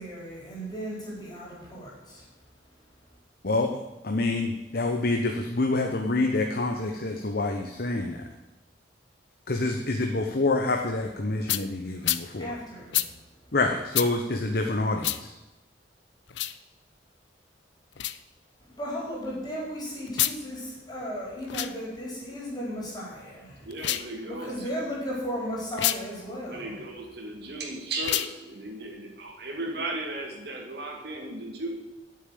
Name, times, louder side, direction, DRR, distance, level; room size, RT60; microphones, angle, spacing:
voice 1, 0.0-2.2 12.4-13.0 18.7-23.7 24.2-26.8, equal, 25° left, -5 dB, 4.6 m, -35 dB
voice 2, 3.4-3.7 4.0-8.2 9.5-12.5 13.5-15.3, left 2 dB, 60° left, 3 dB, 1.0 m, -27 dB
sound 1, 11.5-11.6 12.0-12.2 12.9-13.1 13.9-14.1 15.0-15.2 16.3-16.6 17.9-18.2 20.1-20.4 21.4-21.7 23.7-24.1 25.7-26.0 28.0-28.3, left 14 dB, 80° left, 0.5 m, -27 dB
voice 3, 23.6-24.7 26.4-31.7, right 2 dB, 65° right, -2 dB, 2.4 m, -36 dB
9.7 x 7.5 x 9.4 m, 1.0 s
head